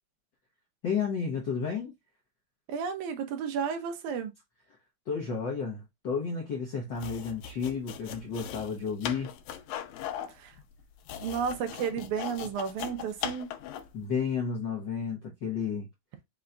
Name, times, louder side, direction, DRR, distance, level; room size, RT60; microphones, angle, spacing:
voice 1, 0.8-1.9 5.1-9.3 13.9-15.9, left 6 dB, 70° left, 1.1 m, -32 dB
voice 2, 2.7-4.3 10.3-10.6 11.2-13.5, right 7 dB, 85° right, 2.3 m, -32 dB
sound 1, 6.9-14.0, left 9 dB, 90° left, 2.0 m, -39 dB
5.6 x 2.3 x 3.8 m
omnidirectional pair, 3.4 m